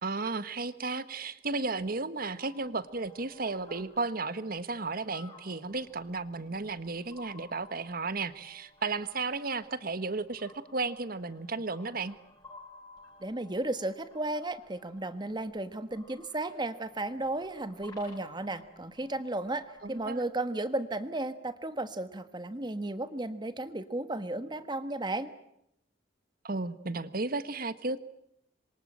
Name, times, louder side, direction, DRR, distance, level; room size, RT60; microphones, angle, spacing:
voice 1, 0.0-12.2 19.8-20.2 26.4-28.0, right 3 dB, 55° right, 13 dB, 1.4 m, -34 dB
sound 1, 2.3-20.2, left 3 dB, 20° left, 6.3 m, -57 dB
voice 2, 13.2-25.3, right 2 dB, 25° right, 11 dB, 1.4 m, -34 dB
27.0 x 23.0 x 8.8 m, 0.80 s
head